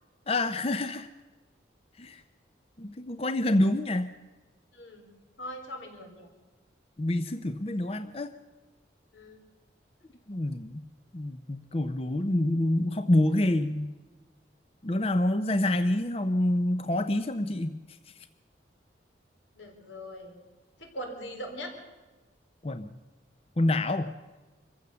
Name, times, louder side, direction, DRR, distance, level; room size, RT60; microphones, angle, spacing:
voice 1, 0.3-1.1 2.0-2.2 2.8-4.1 7.0-8.3 10.3-10.9 11.1-13.9 14.8-17.8 22.6-22.9 23.6-24.1, left 1 dB, 30° left, 10 dB, 0.6 m, -27 dB
voice 2, 4.7-5.1 5.4-6.3 9.1-9.4 19.5-20.4 20.8-21.8, equal, 90° left, 3 dB, 4.0 m, -41 dB
25.0 x 15.0 x 6.9 m, 1.2 s
head